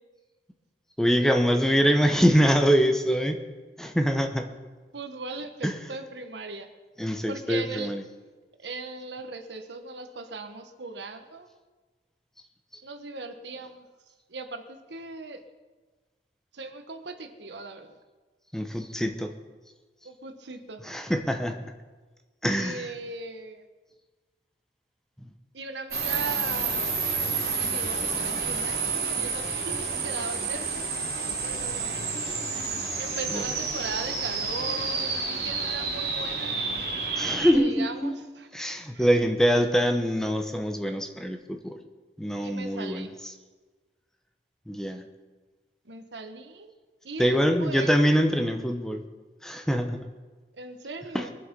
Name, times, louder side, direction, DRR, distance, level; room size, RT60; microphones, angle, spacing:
voice 1, 1.0-3.4 3.8-4.6 5.6-5.8 7.0-8.0 18.5-19.3 20.8-21.7 22.4-22.9 25.2-25.3 33.3-33.4 37.2-38.1 38.5-41.8 42.2-43.1 44.7-45.1 47.2-49.1 49.4-50.0 51.1-51.3, equal, 5° left, 5 dB, 0.8 m, -24 dB
voice 2, 4.9-6.7 7.3-7.9 8.6-11.5 12.8-13.8 14.3-15.4 16.5-18.0 20.0-20.8 22.4-23.6 25.5-30.9 31.4-32.2 33.0-36.6 37.5-38.6 38.9-39.1 42.4-43.1 45.8-46.7 47.0-47.9 50.6-51.3, right 3 dB, 80° right, 8 dB, 1.2 m, -38 dB
sound 1, 25.9-37.5, right 4 dB, 55° right, 2.9 m, -29 dB
22.5 x 7.7 x 5.3 m, 1.3 s
head